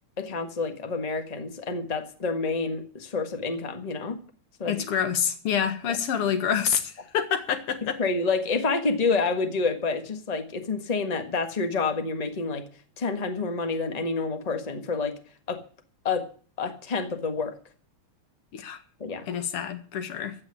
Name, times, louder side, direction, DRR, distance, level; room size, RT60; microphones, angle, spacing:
voice 1, 0.2-4.2 4.6-4.8 8.0-12.6 13.0-15.2 15.5-15.6 16.0-16.2 16.6-17.5 19.0-19.3, left 4 dB, 30° left, 6 dB, 0.7 m, -28 dB
voice 2, 4.7-8.0 18.5-18.8 19.3-20.4, left 8 dB, 55° left, 8 dB, 2.3 m, -27 dB
15.0 x 6.2 x 9.9 m, 0.42 s
omnidirectional pair, 3.4 m